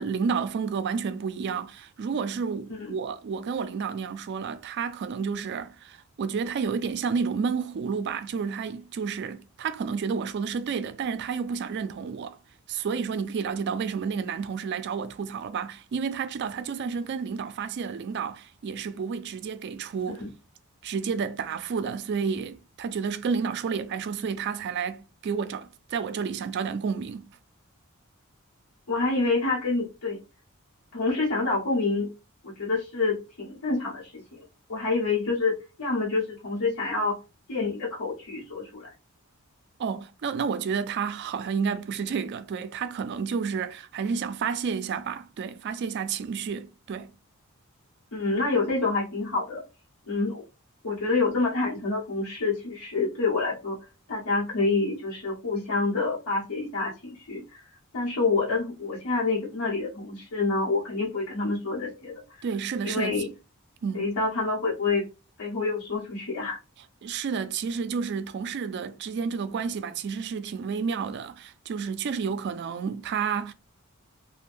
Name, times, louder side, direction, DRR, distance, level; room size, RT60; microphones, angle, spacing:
voice 1, 0.0-12.4 12.7-20.2 20.8-27.3 39.8-47.1 62.4-63.3 63.8-64.1 67.0-73.5, right 6 dB, 50° right, 0.3 m, -30 dB
voice 2, 28.9-30.2 30.9-32.1 32.4-34.4 34.7-37.2 37.5-38.9 48.1-49.6 50.1-50.4 50.8-53.8 54.1-57.6 57.9-62.4 62.8-63.3 63.9-65.0 65.4-66.6, left 3 dB, 85° left, 0.9 m, -27 dB
2.5 x 2.1 x 3.4 m
head